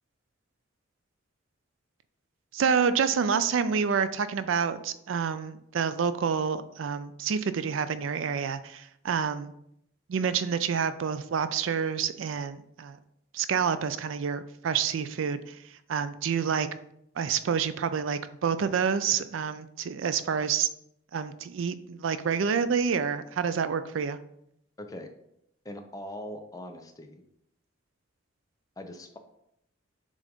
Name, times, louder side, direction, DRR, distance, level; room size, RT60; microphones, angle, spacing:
voice 1, 2.5-9.5 10.1-13.0 13.3-15.6 15.9-16.7 17.2-20.7 21.1-24.2, right 6 dB, 80° right, 12 dB, 0.4 m, -28 dB
voice 2, 24.8-25.1 25.6-27.2 28.8-29.2, left 1 dB, 20° left, 5 dB, 0.6 m, -41 dB
7.4 x 2.5 x 5.2 m, 0.76 s
head